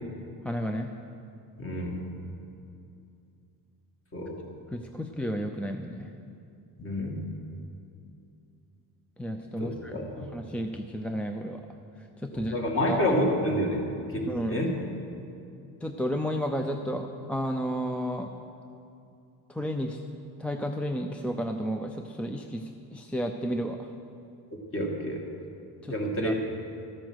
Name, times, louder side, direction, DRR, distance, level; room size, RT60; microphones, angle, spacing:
voice 1, 0.4-0.9 4.7-6.1 9.2-10.0 10.3-11.7 12.2-12.5 12.9-13.2 14.3-14.6 15.8-18.3 19.5-20.0 20.4-23.9 25.8-26.3, equal, 5° left, 4 dB, 0.5 m, -32 dB
voice 2, 1.6-1.9 4.1-4.4 6.8-7.2 9.6-10.3 12.3-13.8 14.1-14.7 24.7-25.2 25.9-26.3, equal, 35° left, 0 dB, 2.3 m, -28 dB
13.5 x 8.8 x 6.3 m, 2.6 s
cardioid pair, 115°, 39 cm